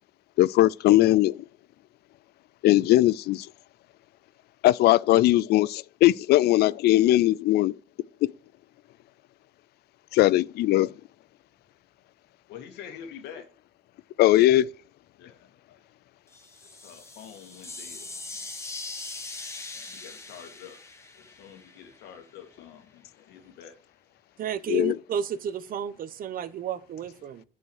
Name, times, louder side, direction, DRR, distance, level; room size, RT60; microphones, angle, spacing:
voice 1, 0.4-1.4 2.6-3.5 4.6-7.7 8.2-8.3 10.1-10.9 14.2-14.7 24.7-24.9, left 15 dB, 70° left, 0.4 m, -20 dB
voice 2, 12.5-13.4 15.2-15.4 15.7-15.8 16.8-18.1 19.7-20.8 21.2-23.0 23.3-23.7, left 8 dB, 85° left, 2.4 m, -46 dB
sound 1, 16.3-22.2, left 3 dB, 15° left, 1.6 m, -41 dB
voice 3, 24.4-27.4, right 8 dB, 55° right, 1.0 m, -32 dB
9.2 x 5.5 x 6.5 m
cardioid pair, 110°, 17 cm